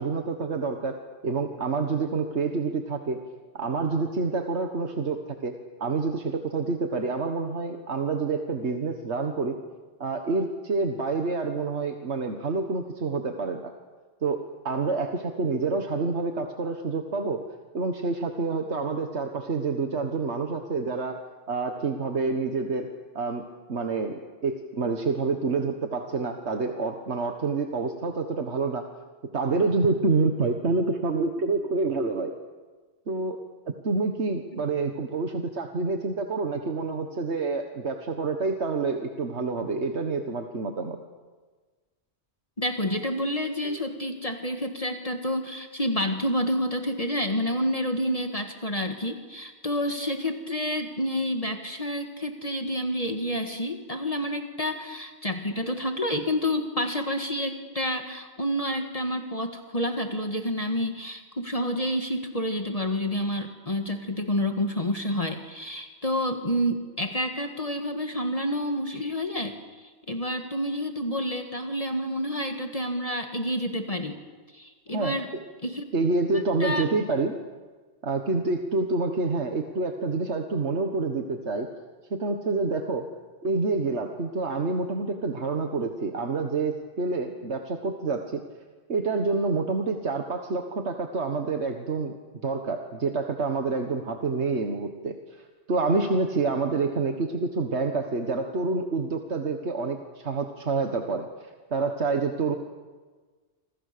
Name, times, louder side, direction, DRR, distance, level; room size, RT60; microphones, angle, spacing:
voice 1, 0.0-3.2 3.5-9.6 10.0-13.7 14.2-17.4 17.7-22.9 23.2-28.9 29.3-32.3 33.1-33.4 33.8-41.0 74.9-75.2 75.9-77.4 78.0-81.7 82.1-83.1 83.4-88.4 88.9-92.1 92.4-102.6, right 3 dB, 80° right, 5 dB, 1.8 m, -28 dB
voice 2, 42.6-74.2 74.5-75.3 75.6-75.8 76.6-76.9, equal, 35° left, 5 dB, 1.8 m, -29 dB
27.5 x 27.0 x 6.8 m, 1.4 s
omnidirectional pair, 1.1 m